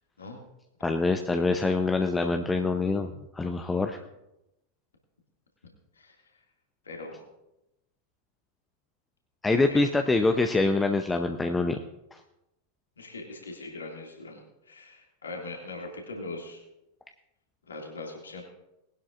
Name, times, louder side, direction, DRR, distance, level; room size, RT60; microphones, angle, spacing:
voice 1, 0.8-4.0 9.4-11.8 12.1-12.2, left 3 dB, 10° left, 5 dB, 0.7 m, -25 dB
voice 2, 6.8-7.2 9.6-9.8 13.0-14.4 14.7-16.6 17.7-18.4, left 2 dB, 70° left, 0 dB, 2.3 m, -41 dB
19.5 x 11.5 x 2.5 m, 0.89 s
figure-of-eight pair, 90°, 0 cm